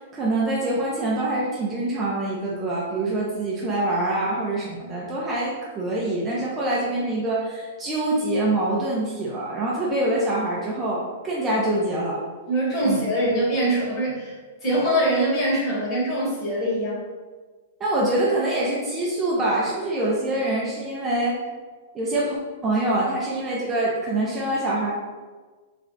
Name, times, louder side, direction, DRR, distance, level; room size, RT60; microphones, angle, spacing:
voice 1, 0.1-12.2 12.8-13.0 17.8-21.4 21.9-22.4 22.6-24.9, right 1 dB, 20° right, -5 dB, 0.6 m, -25 dB
voice 2, 12.5-14.3 14.6-17.0, right 1 dB, 25° left, -6 dB, 1.4 m, -23 dB
3.2 x 2.3 x 3.9 m, 1.4 s
hypercardioid pair, 150°, 0 cm